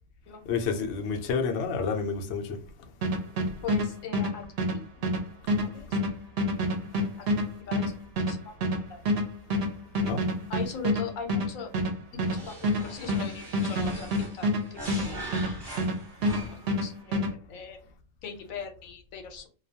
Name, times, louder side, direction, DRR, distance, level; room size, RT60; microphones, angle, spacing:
voice 1, 0.5-2.6 10.0-10.2, left 5 dB, 65° left, 0.7 m, -29 dB
sound 1, 3.0-16.0 16.2-17.3, equal, 60° right, 0.8 m, -27 dB
voice 2, 3.6-5.1 5.6-5.9 7.6-7.9 8.2-9.0 10.5-11.7 12.1-14.1 14.3-15.1 16.5-17.2 17.5-17.8 18.2-19.5, left 6 dB, 80° left, 1.0 m, -40 dB
sound 2, 12.2-16.8, right 1 dB, 20° right, 1.0 m, -41 dB
2.3 x 2.2 x 2.7 m
omnidirectional pair, 1.4 m